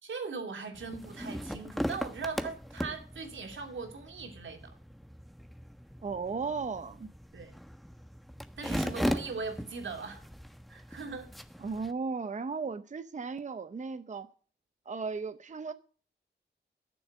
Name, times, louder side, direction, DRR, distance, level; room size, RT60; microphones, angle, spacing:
voice 1, 0.0-4.8 7.3-7.5 8.6-10.2 10.7-11.3, right 4 dB, 85° right, 2.8 m, -39 dB
sound 1, 0.7-11.9, equal, ahead, 1.3 m, -38 dB
voice 2, 6.0-7.1 11.6-14.3 14.9-15.7, right 4 dB, 40° right, 0.7 m, -35 dB
12.5 x 7.1 x 7.4 m
wide cardioid pair, 90°, 19 cm